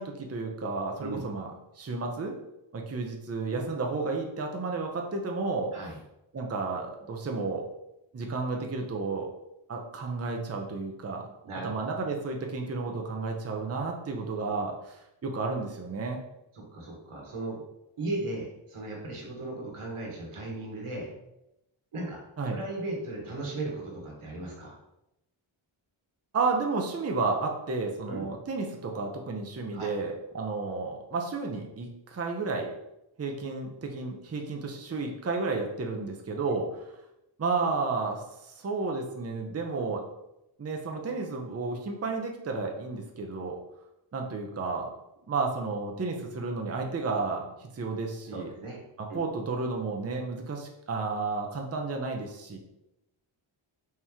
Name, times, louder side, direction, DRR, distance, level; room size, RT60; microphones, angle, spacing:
voice 1, 0.0-1.5 1.8-2.3 2.7-5.7 6.3-7.6 8.1-9.3 9.7-11.3 11.6-16.2 22.4-22.6 26.3-32.7 33.2-36.9 37.4-40.0 40.6-43.6 44.1-44.9 45.3-47.5 47.7-48.5 49.0-52.6, right 3 dB, 30° right, 1 dB, 0.6 m, -32 dB
voice 2, 11.4-11.7 16.5-17.6 18.0-21.1 21.9-22.2 22.5-24.7 28.1-28.3 29.7-29.9 48.3-48.8 49.1-49.2, right 2 dB, 90° right, -1 dB, 1.3 m, -36 dB
4.3 x 3.0 x 3.5 m, 0.88 s
wide cardioid pair, 85°, 49 cm